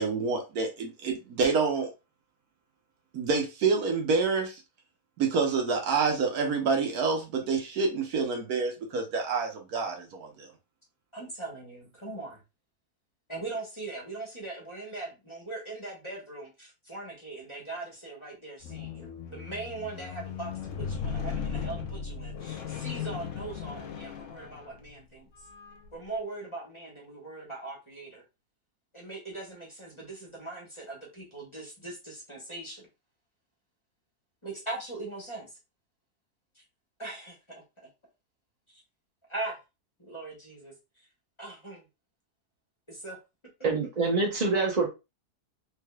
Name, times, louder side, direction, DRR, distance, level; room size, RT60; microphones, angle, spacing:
voice 1, 0.0-1.9 3.1-4.6 5.2-10.5, right 4 dB, 70° right, 2 dB, 1.4 m, -27 dB
voice 2, 11.1-12.4 13.3-25.4 25.9-28.2 28.9-32.9 34.4-35.6 36.5-36.6 37.0-37.9 38.7-38.8 39.3-39.6 40.0-41.1 41.4-41.9 42.9-43.2, right 2 dB, 20° left, -3 dB, 1.1 m, -40 dB
Squeak, 18.6-25.0 25.7-25.9, left 7 dB, 65° left, 0.9 m, -37 dB
voice 3, 43.6-44.9, right 3 dB, 45° right, -1 dB, 0.5 m, -25 dB
3.6 x 3.4 x 2.3 m, 0.26 s
omnidirectional pair, 1.7 m